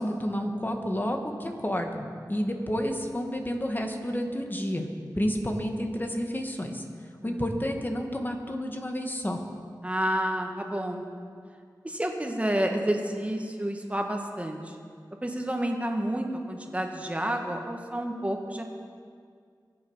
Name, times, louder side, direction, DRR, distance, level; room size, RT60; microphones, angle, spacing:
voice 1, 0.0-4.9 5.2-6.8 7.2-9.4, equal, 25° left, 3 dB, 1.8 m, -30 dB
voice 2, 9.8-11.0 11.8-14.8 15.2-18.6, right 1 dB, 20° right, 2 dB, 2.0 m, -30 dB
22.5 x 7.8 x 5.7 m, 2.1 s
wide cardioid pair, 50°, 7 cm